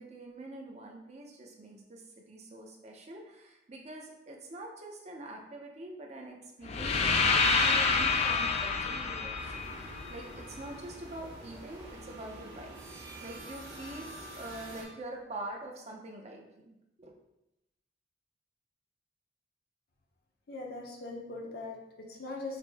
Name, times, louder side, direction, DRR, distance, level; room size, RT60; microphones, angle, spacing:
voice 1, 0.0-17.1, right 2 dB, 35° right, 1 dB, 0.5 m, -45 dB
sound 1, 6.7-10.7, left 4 dB, 35° left, 0.3 m, -28 dB
sound 2, 9.3-14.8, right 1 dB, 75° right, 1.4 m, -47 dB
voice 2, 20.5-22.6, left 2 dB, 60° left, 0 dB, 0.7 m, -41 dB
5.0 x 2.0 x 3.3 m, 0.88 s
head